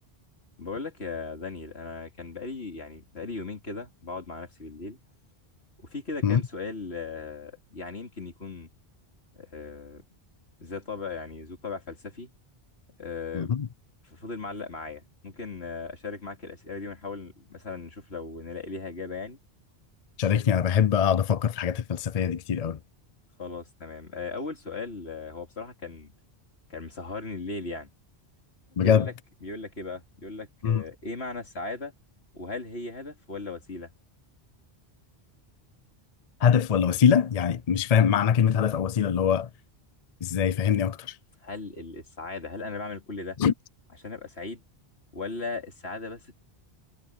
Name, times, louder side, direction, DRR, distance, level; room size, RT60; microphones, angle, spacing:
voice 1, 0.6-5.0 5.8-8.7 9.3-10.0 10.6-12.3 13.0-13.5 14.0-19.4 23.4-26.1 26.7-27.9 28.8-29.1 29.4-31.9 32.3-33.9 41.4-43.4 44.0-44.6 45.1-46.4, left 3 dB, 85° left, 3.0 m, -37 dB
voice 2, 13.3-13.7 20.2-22.8 28.8-29.1 30.6-30.8 36.4-39.5 40.2-41.2 43.4-43.5, left 8 dB, 45° left, 0.5 m, -23 dB
omnidirectional pair, 1.1 m